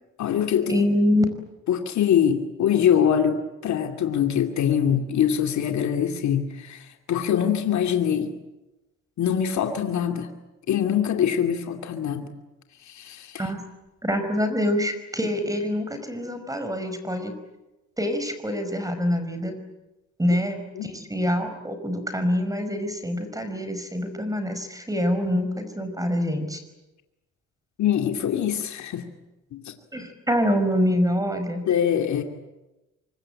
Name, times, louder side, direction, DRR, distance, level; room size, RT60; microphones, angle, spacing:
voice 1, 0.2-0.9 1.7-8.3 9.2-10.3 10.7-12.3 12.9-13.5 20.8-20.9 27.8-29.0 29.5-29.7 31.7-32.2, left 9 dB, 70° left, 5 dB, 2.6 m, -23 dB
voice 2, 0.7-1.2 13.4-13.6 14.0-17.3 18.0-19.5 20.2-20.6 20.9-26.6 29.9-31.6, equal, 10° right, 9 dB, 5.0 m, -25 dB
25.0 x 23.0 x 8.9 m, 1.0 s
cardioid pair, 90°, 30 cm